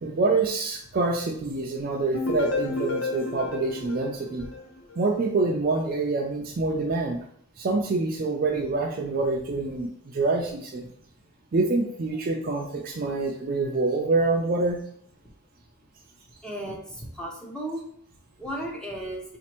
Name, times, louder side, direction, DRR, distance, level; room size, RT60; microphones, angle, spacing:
voice 1, 0.0-4.5 5.0-7.2 7.6-10.8 11.5-14.8, right 3 dB, 40° right, 2 dB, 0.4 m, -26 dB
sound 1, 2.1-5.1, left 3 dB, 65° left, 0.6 m, -31 dB
voice 2, 16.4-17.8 18.4-19.2, right 1 dB, 5° left, -2 dB, 0.6 m, -34 dB
4.1 x 2.5 x 2.9 m, 0.65 s
head